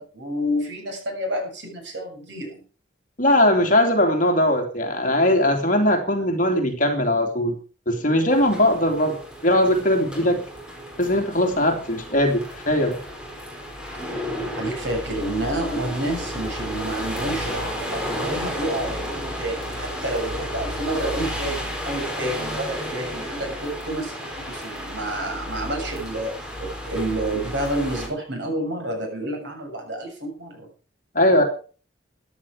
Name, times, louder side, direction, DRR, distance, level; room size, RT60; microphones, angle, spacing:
voice 1, 0.0-2.6 14.6-30.7, right 1 dB, 65° right, 2 dB, 7.3 m, -29 dB
voice 2, 3.2-7.6 7.9-9.2 9.4-10.4 11.0-13.0 31.1-31.4, left 1 dB, 45° left, 3 dB, 3.1 m, -20 dB
sound 1, 8.3-28.1, equal, 5° right, 4.2 m, -32 dB
14.5 x 11.0 x 4.9 m, 0.38 s
head